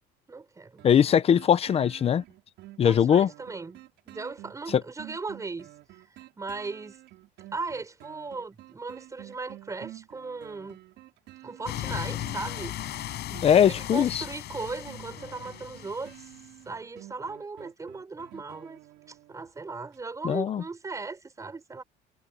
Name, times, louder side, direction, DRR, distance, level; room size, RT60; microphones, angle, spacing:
voice 1, 0.3-0.8 2.8-3.8 4.1-5.7 6.1-7.0 7.5-10.8 11.4-12.8 13.3-16.3 16.7-18.8 19.1-21.8, right 4 dB, 15° right, 5.5 m, -37 dB
voice 2, 0.8-2.2 2.8-3.3 4.7-4.8 13.4-14.2 20.2-20.6, left 8 dB, 30° left, 0.7 m, -21 dB
sound 1, 0.8-19.5 19.9-20.0, right 16 dB, 65° right, 5.8 m, -50 dB
sound 2, 11.7-16.5, left 14 dB, 55° left, 6.6 m, -37 dB
cardioid pair, 160°, 21 cm